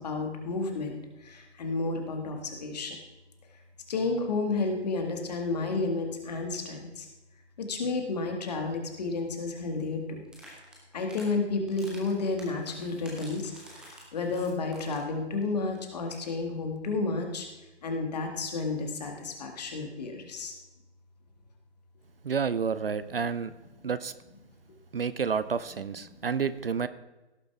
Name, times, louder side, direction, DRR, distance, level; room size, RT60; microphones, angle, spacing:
voice 1, 0.0-3.0 3.9-7.1 7.6-10.3 10.9-17.5 17.8-20.5 23.8-23.9 26.1-26.3, left 3 dB, 35° left, 3 dB, 1.9 m, -31 dB
sound 1, 10.2-11.3 11.7-15.1 15.4-15.5 15.7-15.8 16.0-16.3, right 1 dB, ahead, 1.1 m, -50 dB
voice 2, 22.2-23.5 23.8-24.1 24.9-26.9, right 6 dB, 55° right, 14 dB, 0.6 m, -30 dB
17.5 x 7.1 x 3.5 m, 1.1 s
figure-of-eight pair, 145°, 35 cm